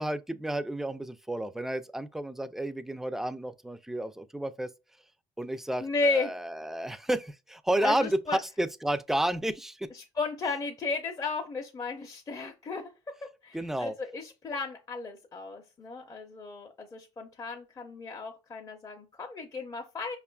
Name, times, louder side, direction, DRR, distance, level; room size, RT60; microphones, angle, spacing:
voice 1, 0.0-4.7 5.4-9.9 13.5-13.9, right 1 dB, 5° right, 0.3 m, -31 dB
voice 2, 5.8-6.3 7.8-8.4 9.9-20.2, left 3 dB, 30° left, 0.6 m, -34 dB
5.1 x 2.4 x 2.2 m
supercardioid pair, 75°, 12 cm